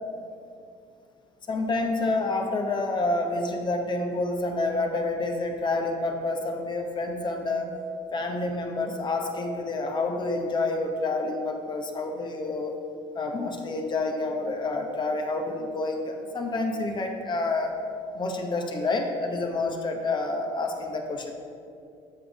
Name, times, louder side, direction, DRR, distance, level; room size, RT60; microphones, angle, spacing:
voice 1, 1.5-7.7 8.1-12.7 13.1-17.8 18.1-21.3, left 2 dB, 40° left, 3 dB, 0.9 m, -28 dB
7.4 x 3.6 x 6.0 m, 2.5 s
supercardioid pair, 80°, 12 cm